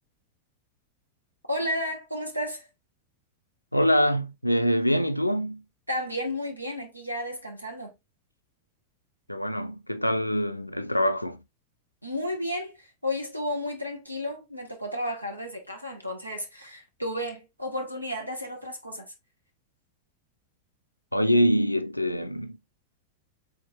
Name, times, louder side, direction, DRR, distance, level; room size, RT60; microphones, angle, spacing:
voice 1, 1.5-2.7 5.9-7.9 12.0-19.1, left 1 dB, 90° right, 1.3 m, -32 dB
voice 2, 3.7-5.6 9.3-11.4 21.1-22.6, equal, 85° left, 0.4 m, -24 dB
4.7 x 3.9 x 2.8 m
figure-of-eight pair, 90°, 0 cm